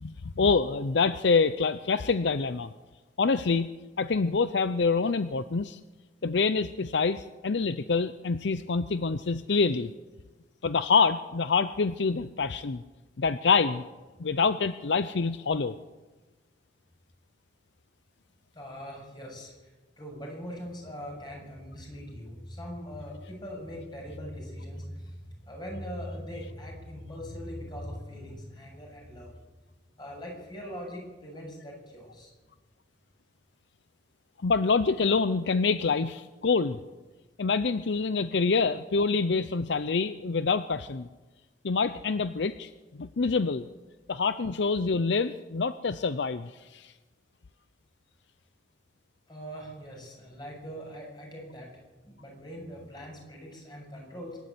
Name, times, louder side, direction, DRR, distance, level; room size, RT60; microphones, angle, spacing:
voice 1, 0.0-2.7 3.2-3.7 4.0-5.8 6.2-9.9 10.6-12.8 13.2-13.8 14.2-15.8 34.4-36.8 37.4-41.1 41.6-42.7 43.0-43.7 44.1-46.9, left 4 dB, 75° left, 13 dB, 0.6 m, -26 dB
voice 2, 18.5-19.5 20.0-25.2 25.5-29.3 30.0-32.3 49.3-51.7 52.0-54.4, equal, 25° left, 0 dB, 7.6 m, -41 dB
26.5 x 12.0 x 8.5 m, 1.2 s
head